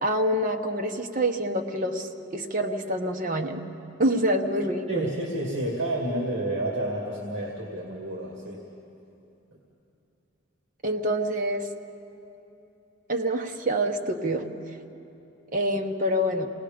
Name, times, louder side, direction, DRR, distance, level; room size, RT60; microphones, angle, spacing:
voice 1, 0.0-3.7 4.0-5.1 10.8-11.7 13.1-14.5 15.5-16.5, right 1 dB, 40° right, 3 dB, 1.0 m, -26 dB
voice 2, 4.9-8.7 9.5-9.6, right 1 dB, 70° right, -2 dB, 2.3 m, -30 dB
27.0 x 19.0 x 5.1 m, 2.8 s
head